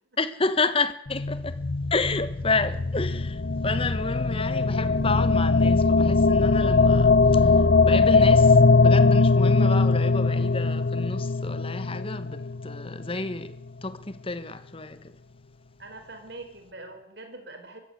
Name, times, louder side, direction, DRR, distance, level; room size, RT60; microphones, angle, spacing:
voice 1, 0.2-1.6 1.9-13.5 13.8-15.1, left 3 dB, 25° left, 1.2 m, -30 dB
sound 1, 1.1-13.3, left 3 dB, 50° left, 0.7 m, -21 dB
voice 2, 15.8-17.8, right 2 dB, 55° right, 4.6 m, -43 dB
23.5 x 15.0 x 8.0 m
head